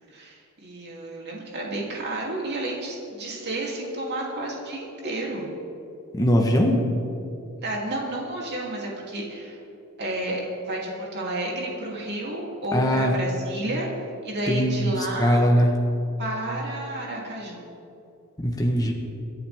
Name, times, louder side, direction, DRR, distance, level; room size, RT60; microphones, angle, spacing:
voice 1, 0.0-5.5 7.6-9.6 10.0-13.9 14.2-15.4 16.2-17.7, right 1 dB, 50° right, -3 dB, 3.1 m, -31 dB
voice 2, 6.1-6.8 12.7-13.1 14.5-15.7 18.4-18.9, equal, 15° left, 1 dB, 1.2 m, -21 dB
27.5 x 10.5 x 3.6 m, 2.7 s
head